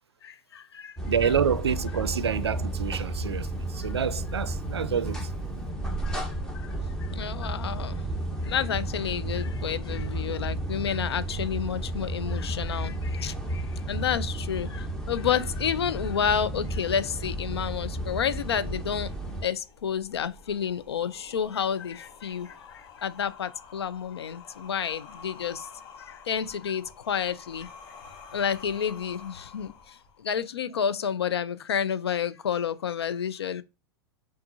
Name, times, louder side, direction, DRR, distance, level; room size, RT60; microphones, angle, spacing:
voice 1, 0.2-1.0 1.2-1.3 3.8-4.0 6.0-6.3 6.5-8.0 8.4-19.1 19.4-25.7 26.0-27.7 28.3-33.6, left 8 dB, 80° left, 0.4 m, -30 dB
sound 1, 1.0-19.4, right 1 dB, 5° left, 0.9 m, -32 dB
voice 2, 1.1-5.2, right 7 dB, 85° right, 0.4 m, -27 dB
sound 2, 17.4-30.4, left 5 dB, 35° left, 0.8 m, -50 dB
5.8 x 2.4 x 2.7 m
figure-of-eight pair, 100°, 13 cm